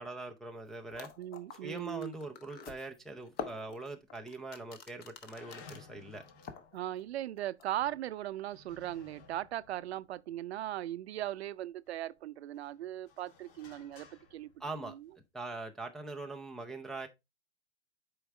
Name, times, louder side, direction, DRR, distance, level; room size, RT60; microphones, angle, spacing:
voice 1, 0.0-1.1 1.6-6.2 14.6-14.9 15.3-17.1, right 2 dB, ahead, 0.4 m, -42 dB
sound 1, 0.6-0.7 0.9-5.8 6.2-7.0 7.4-7.7, left 6 dB, 25° left, 1.0 m, -46 dB
voice 2, 1.2-2.1 6.7-14.5 14.8-15.1, right 13 dB, 65° right, 0.6 m, -38 dB
sound 2, 3.3-4.1 4.4-4.5 5.2-11.4 11.9-15.2, left 4 dB, 45° left, 2.0 m, -58 dB
7.8 x 4.7 x 3.1 m
hypercardioid pair, 120°, 35 cm